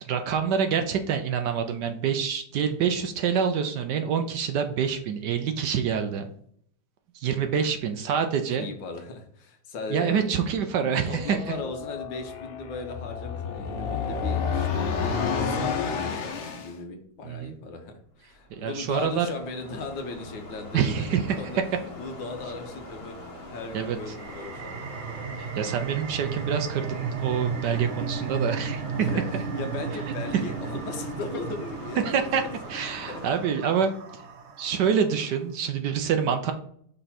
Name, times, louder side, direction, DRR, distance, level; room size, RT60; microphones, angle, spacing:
voice 1, 0.1-6.3 7.1-8.7 9.9-11.4 17.2-17.5 18.5-19.3 20.7-21.4 23.7-24.0 25.4-28.8 29.3-29.4 32.0-32.4 32.7-33.9 34.6-36.5, right 7 dB, 70° right, 6 dB, 1.1 m, -26 dB
voice 2, 8.6-10.2 11.1-23.2 23.5-24.8 29.0-32.5 33.1-33.2 33.6-33.7, left 3 dB, 70° left, 4 dB, 1.7 m, -38 dB
sound 1, 11.3-16.7, left 6 dB, 90° left, 1.7 m, -29 dB
sound 2, 18.3-33.3, left 1 dB, 40° left, 1.7 m, -43 dB
sound 3, 24.0-35.2, right 6 dB, 90° right, 0.5 m, -34 dB
5.5 x 4.3 x 4.2 m, 0.64 s
omnidirectional pair, 2.1 m